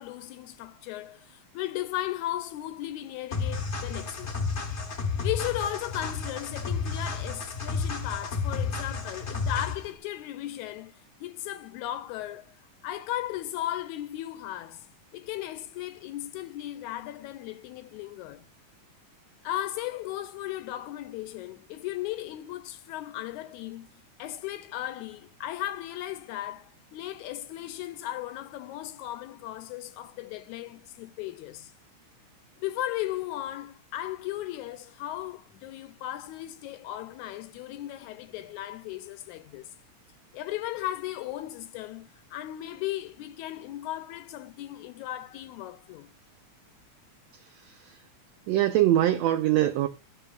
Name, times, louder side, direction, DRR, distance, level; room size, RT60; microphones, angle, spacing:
voice 1, 0.0-4.4 5.2-12.6 12.8-18.5 19.4-23.9 24.2-31.7 32.6-39.7 40.3-46.1, left 14 dB, 80° left, 1.8 m, -36 dB
sound 1, 3.3-9.9, left 4 dB, 60° left, 0.7 m, -32 dB
voice 2, 47.4-48.0 48.5-49.9, right 13 dB, 85° right, 1.5 m, -24 dB
12.5 x 6.6 x 2.4 m
omnidirectional pair, 3.7 m